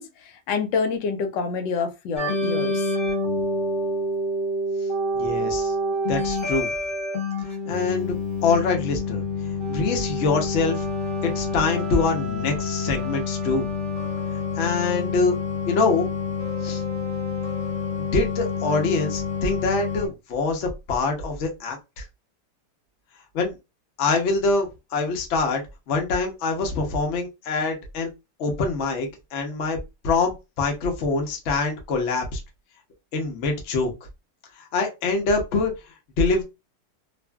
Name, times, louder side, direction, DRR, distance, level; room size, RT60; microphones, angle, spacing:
voice 1, 0.0-2.8, left 5 dB, 80° left, 1.2 m, -27 dB
sound 1, 2.2-20.1, left 2 dB, 30° left, 1.1 m, -27 dB
voice 2, 5.2-5.7 6.1-6.7 7.7-9.2 9.7-10.9 11.2-13.7 14.6-15.4 15.7-16.1 16.6-16.8 18.1-22.0 23.3-23.6 24.0-28.1 28.4-29.8 30.0-32.4 33.1-33.9 34.6-35.7 36.2-36.4, left 3 dB, 60° left, 0.8 m, -24 dB
2.8 x 2.5 x 2.2 m
omnidirectional pair, 2.0 m